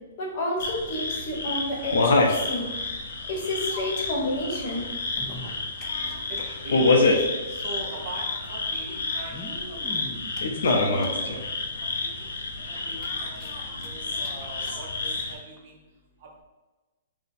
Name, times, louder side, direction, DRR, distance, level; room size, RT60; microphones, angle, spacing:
voice 1, 0.2-2.7 3.3-4.8, left 1 dB, 40° left, -2 dB, 0.9 m, -30 dB
sound 1, 0.6-15.3, left 3 dB, 80° left, 0.5 m, -27 dB
sound 2, 5.0-6.4 6.7-6.8 7.0-7.1 8.1-8.2 9.1-11.4 12.0-12.1 12.4-12.5 12.9-13.9 14.2-14.3 14.6-14.8 15.6-15.7, left 1 dB, 10° left, 0.4 m, -41 dB
voice 2, 5.9-9.8 10.8-11.4 11.8-12.3 12.7-15.8, right 2 dB, 40° right, 0 dB, 0.6 m, -41 dB
2.6 x 2.1 x 4.0 m, 1.2 s
hypercardioid pair, 160°, 0 cm